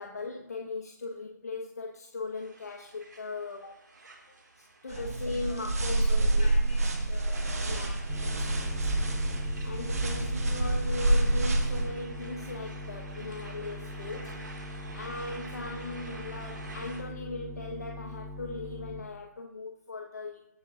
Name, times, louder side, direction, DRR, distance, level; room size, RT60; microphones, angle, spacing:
voice 1, 0.0-3.7 4.6-6.6 7.7-8.0 9.6-20.5, left 3 dB, 60° left, 2 dB, 1.1 m, -39 dB
sound 1, 2.3-17.0, right 2 dB, 75° right, 1.9 m, -48 dB
voice 2, 4.9-9.1, left 3 dB, 35° left, 0 dB, 2.8 m, -49 dB
sound 2, 4.9-11.9, right 2 dB, 55° right, 1.6 m, -27 dB
sound 3, 8.1-19.0, left 1 dB, ahead, 0.4 m, -42 dB
18.0 x 6.9 x 2.5 m, 0.86 s
figure-of-eight pair, 165°, 10 cm